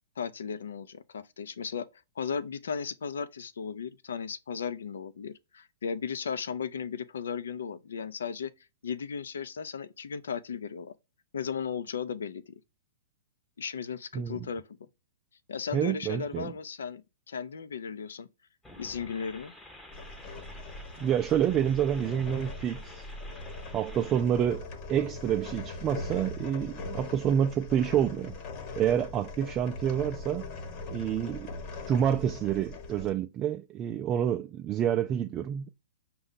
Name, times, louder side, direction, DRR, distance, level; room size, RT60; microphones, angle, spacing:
voice 1, 0.2-1.9 2.2-8.5 8.8-10.9 11.3-12.5 13.6-14.9 15.5-18.3 18.8-19.5, left 6 dB, 80° left, 0.5 m, -36 dB
voice 2, 15.7-16.5 21.0-23.0 23.7-28.3 28.8-30.5 30.9-31.5 31.9-35.7, right 9 dB, 25° right, 0.3 m, -28 dB
sound 1, 18.6-24.2, left 1 dB, 10° left, 0.7 m, -50 dB
sound 2, 19.9-33.1, left 3 dB, 40° left, 1.2 m, -41 dB
5.3 x 2.3 x 3.8 m
hypercardioid pair, 130°, 0 cm